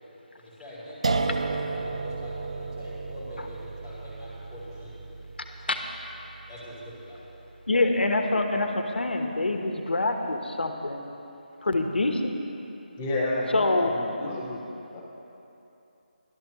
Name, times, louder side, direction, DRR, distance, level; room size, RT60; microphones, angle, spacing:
voice 1, 0.4-5.5 6.5-7.3, equal, 15° right, -17 dB, 2.8 m, -43 dB
sound 1, 1.0-8.0, right 3 dB, 40° right, 0.4 m, -33 dB
voice 2, 7.7-11.0 11.6-12.3 13.5-13.9, left 2 dB, 90° left, 5 dB, 1.2 m, -25 dB
voice 3, 13.0-14.6 14.9-15.0, left 2 dB, 10° left, -4 dB, 0.8 m, -30 dB
16.0 x 12.0 x 3.1 m, 2.8 s
figure-of-eight pair, 175°, 5 cm